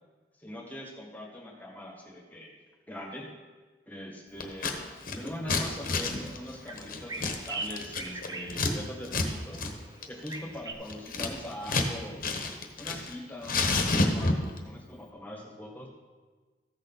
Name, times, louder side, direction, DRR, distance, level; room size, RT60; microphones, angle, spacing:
voice 1, 0.4-2.5 2.9-3.3 3.9-9.7 10.1-12.3 12.8-15.9, left 1 dB, 10° left, 0 dB, 1.6 m, -42 dB
Scissors, 4.4-4.8 5.0-8.7 9.0-9.3 9.5-9.7 10.0-11.9 12.2-13.1 13.4-14.6, left 3 dB, 55° left, 1.1 m, -29 dB
sound 1, 5.8-10.7, right 3 dB, 20° right, 0.6 m, -42 dB
14.5 x 6.5 x 4.1 m, 1.4 s
head